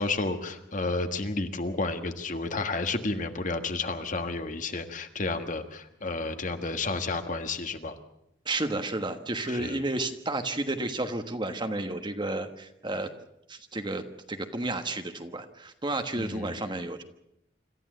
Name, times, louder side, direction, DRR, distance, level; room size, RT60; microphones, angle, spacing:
voice 1, 0.0-7.9 9.5-9.8 16.2-16.6, left 3 dB, 45° left, 7 dB, 1.5 m, -31 dB
voice 2, 8.4-13.1 13.5-17.0, right 2 dB, 25° right, 7 dB, 1.3 m, -32 dB
26.5 x 14.0 x 7.8 m, 0.80 s
head